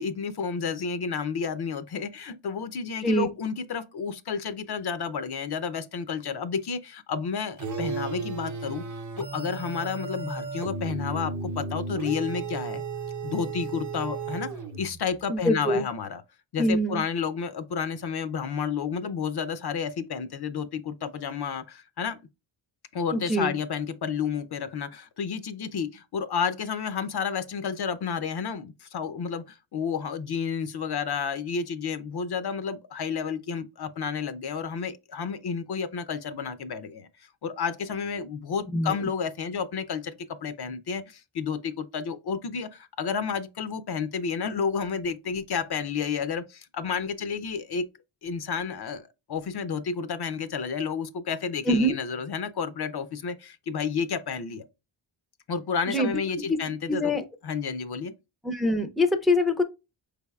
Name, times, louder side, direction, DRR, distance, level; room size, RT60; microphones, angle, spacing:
voice 1, 0.0-8.8 9.2-12.8 13.2-14.5 14.8-16.2 16.5-22.2 22.9-37.1 37.4-47.8 48.2-54.7 55.5-57.2 57.4-58.1, left 6 dB, 55° left, 0.5 m, -31 dB
sound 1, 7.6-15.1, right 4 dB, 40° right, 0.7 m, -34 dB
voice 2, 15.3-15.8 16.6-17.0 23.1-23.5 38.7-38.9 51.7-51.9 55.9-56.1 56.5-56.6 56.9-57.2 58.4-59.6, left 1 dB, ahead, 0.5 m, -24 dB
4.7 x 3.4 x 2.3 m
cardioid pair, 85°, 49 cm